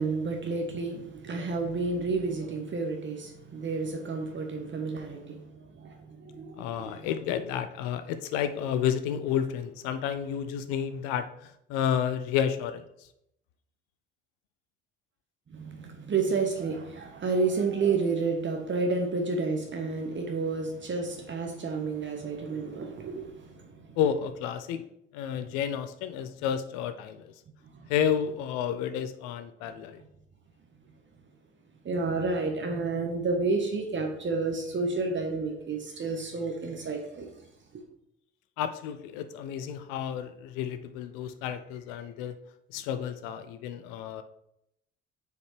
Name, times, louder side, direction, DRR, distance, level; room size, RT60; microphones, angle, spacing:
voice 1, 0.0-7.0 15.5-24.0 27.7-27.9 31.8-37.3, right 4 dB, 30° right, 1.2 m, -30 dB
voice 2, 6.6-12.8 24.0-24.9 25.1-27.3 27.9-30.0 38.6-42.3 42.7-44.2, left 8 dB, 60° left, 0.6 m, -31 dB
9.2 x 4.9 x 3.2 m
figure-of-eight pair, 50°, 36 cm